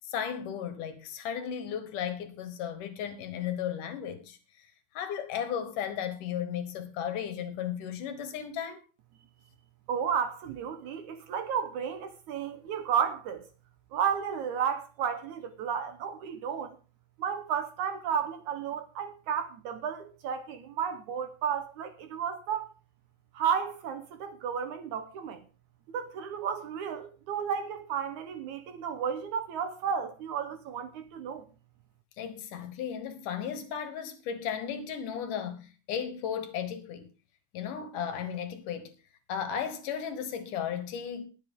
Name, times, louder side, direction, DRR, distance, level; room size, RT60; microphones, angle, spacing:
voice 1, 0.1-4.4 4.9-8.8 32.2-37.1 37.5-38.9 39.3-41.2, left 8 dB, 70° left, 2.7 m, -35 dB
voice 2, 9.9-13.4 13.9-16.8 17.2-22.7 23.3-25.4 25.9-31.4, right 7 dB, 65° right, 2.2 m, -32 dB
20.5 x 7.9 x 3.7 m
omnidirectional pair, 4.1 m